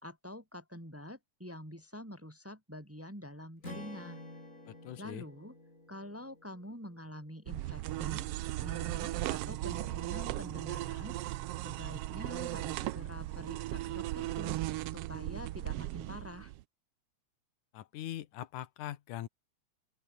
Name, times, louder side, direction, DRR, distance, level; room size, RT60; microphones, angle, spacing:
voice 1, 0.0-4.2 5.0-5.5 5.9-8.3 8.6-11.3 11.6-16.5, left 1 dB, 5° right, 2.1 m, -46 dB
Strum, 3.6-7.9, left 1 dB, 25° left, 7.9 m, -51 dB
voice 2, 4.7-5.2 17.7-19.3, left 12 dB, 90° left, 2.7 m, -42 dB
sound 1, 7.5-16.6, right 16 dB, 80° right, 1.4 m, -37 dB
open air
omnidirectional pair, 3.4 m